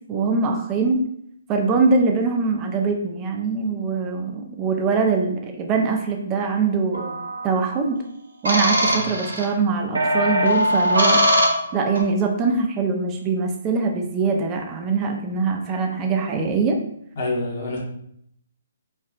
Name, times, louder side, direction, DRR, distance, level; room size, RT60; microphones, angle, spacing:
voice 1, 0.1-1.0 1.5-7.2 7.4-8.0 8.4-11.2 11.7-16.8, right 4 dB, 20° right, 3 dB, 0.4 m, -22 dB
sound 1, 6.9-7.5 8.4-9.5 9.9-12.0, equal, 75° right, 0.7 m, -21 dB
voice 2, 17.2-17.8, left 2 dB, 50° left, -2 dB, 1.0 m, -27 dB
4.5 x 2.3 x 2.4 m, 0.71 s
figure-of-eight pair, 135°, 0 cm